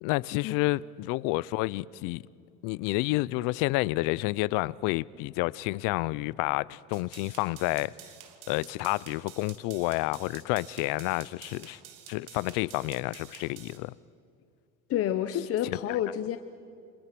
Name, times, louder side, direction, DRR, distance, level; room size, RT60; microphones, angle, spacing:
voice 1, 0.0-2.2 2.6-7.9 8.5-11.8 12.1-13.9 15.6-16.0, left 21 dB, 85° left, 0.6 m, -29 dB
sound 1, 6.9-13.8, right 10 dB, 85° right, 2.7 m, -50 dB
voice 2, 14.9-16.4, left 11 dB, 50° left, 1.0 m, -29 dB
29.0 x 26.5 x 6.0 m
cardioid pair, 140°, 31 cm